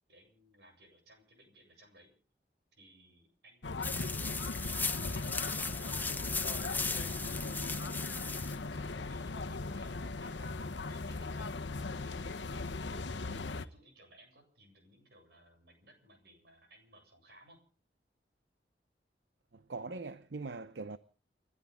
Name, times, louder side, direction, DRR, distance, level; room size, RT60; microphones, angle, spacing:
voice 1, 0.1-2.1 2.7-5.1 5.5-11.6 12.0-12.8 13.3-17.6, right 1 dB, 60° right, 8.0 m, -61 dB
sound 1, 3.6-13.7, left 3 dB, 90° left, 1.1 m, -38 dB
sound 2, 3.8-8.6, left 4 dB, 10° left, 0.7 m, -37 dB
voice 2, 19.5-21.0, right 3 dB, 75° right, 0.8 m, -42 dB
30.0 x 12.5 x 3.7 m
head